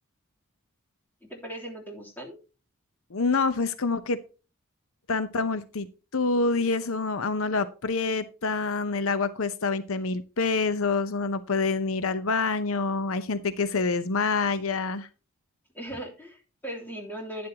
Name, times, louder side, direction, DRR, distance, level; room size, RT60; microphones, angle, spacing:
voice 1, 1.2-2.4 15.7-17.5, right 1 dB, 10° left, -1 dB, 3.2 m, -38 dB
voice 2, 3.1-4.2 5.1-5.9 6.1-15.1, left 4 dB, 70° left, 13 dB, 0.8 m, -27 dB
11.5 x 10.5 x 2.9 m, 0.33 s
head